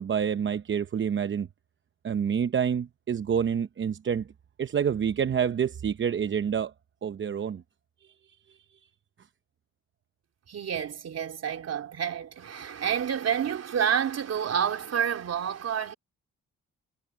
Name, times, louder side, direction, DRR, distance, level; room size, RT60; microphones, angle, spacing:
voice 1, 0.0-1.5 2.0-4.3 4.6-6.7 7.0-7.6, right 7 dB, 40° right, 0.8 m, -27 dB
voice 2, 10.5-15.9, right 8 dB, 55° right, 3.7 m, -29 dB
cardioid pair, 105°, 30 cm